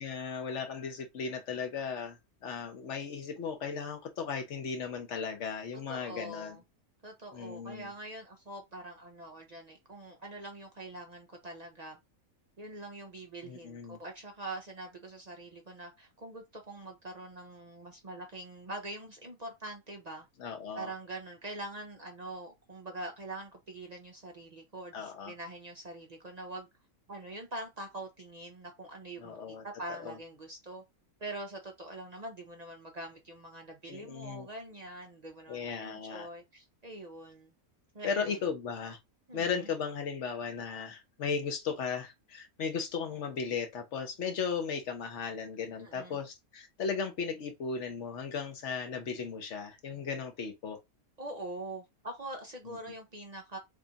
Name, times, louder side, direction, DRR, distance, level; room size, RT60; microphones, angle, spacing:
voice 1, 0.0-6.6 7.3-7.9 13.4-14.0 20.4-20.9 24.9-25.3 29.2-29.6 30.0-30.2 33.9-34.5 35.5-36.3 38.0-39.0 39.3-50.8 52.6-52.8, left 6 dB, 60° left, 1.1 m, -36 dB
voice 2, 5.9-6.6 7.0-12.0 12.6-20.3 20.8-26.7 27.1-30.8 31.2-37.5 37.9-38.4 39.3-39.7 45.8-46.2 51.2-53.6, right 2 dB, 45° right, 0.5 m, -44 dB
3.5 x 2.4 x 3.9 m
omnidirectional pair, 1.5 m